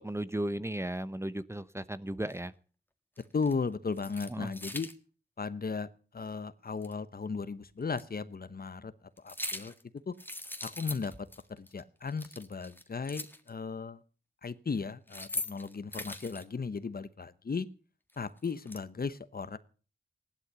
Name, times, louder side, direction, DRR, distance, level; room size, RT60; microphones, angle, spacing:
voice 1, 0.0-2.5 4.3-4.5, right 1 dB, 15° right, 15 dB, 0.8 m, -35 dB
sound 1, 2.3-2.4 3.2-3.6 3.9-4.9 6.8-6.9 7.9-8.0 9.2-9.8 10.2-11.4 11.7-11.8 12.1-13.5 14.9-16.4 18.1-18.8, left 1 dB, 10° left, 1.7 m, -41 dB
voice 2, 3.3-4.9 5.4-5.9 6.1-8.9 9.2-9.7 10.1-10.2 10.6-14.0 14.4-17.7 18.2-19.6, left 5 dB, 55° left, 15 dB, 1.0 m, -36 dB
15.5 x 12.0 x 6.8 m, 0.40 s
wide cardioid pair, 65°, 19 cm